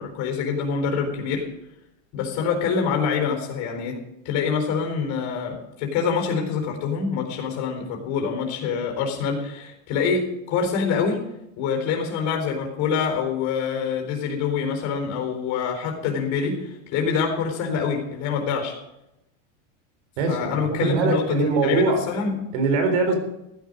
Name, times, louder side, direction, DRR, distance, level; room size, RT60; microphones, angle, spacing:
voice 1, 0.0-1.4 2.1-11.2 11.6-18.7 20.3-22.3, left 6 dB, 50° left, 2 dB, 4.2 m, -25 dB
voice 2, 20.2-22.0 22.5-23.2, right 4 dB, 65° right, 6 dB, 4.1 m, -22 dB
15.0 x 10.5 x 5.2 m, 0.88 s
supercardioid pair, 140°, 38 cm